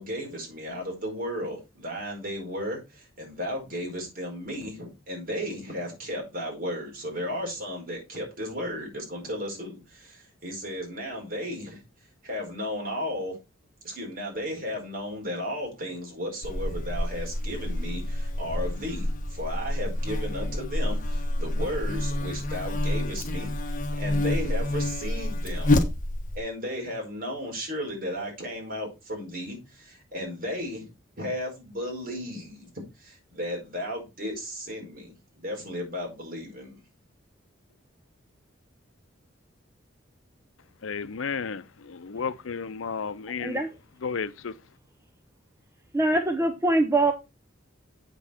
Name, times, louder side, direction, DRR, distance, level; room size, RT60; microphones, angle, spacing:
voice 1, 0.0-11.8 12.2-13.4 13.8-25.8 26.3-30.9 31.2-36.8, equal, 45° right, 4.7 m, -34 dB
Buzz, 16.4-26.4, left 1 dB, 45° left, 1.3 m, -28 dB
voice 2, 40.8-43.6 44.0-44.5, left 5 dB, 85° left, 0.6 m, -33 dB
voice 3, 43.4-43.7 45.9-47.1, right 2 dB, 15° right, 0.8 m, -23 dB
7.9 x 6.9 x 4.4 m
head